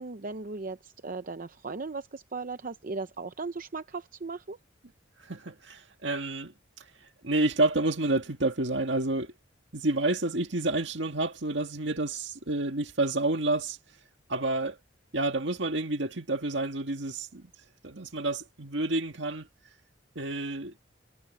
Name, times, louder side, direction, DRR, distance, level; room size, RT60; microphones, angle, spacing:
voice 1, 0.0-4.6, right 3 dB, 45° right, 0.7 m, -37 dB
voice 2, 5.2-6.5 7.2-9.3 9.7-13.8 14.3-14.8 15.1-17.5 17.8-19.5 20.2-20.7, right 2 dB, 70° right, 2.0 m, -29 dB
head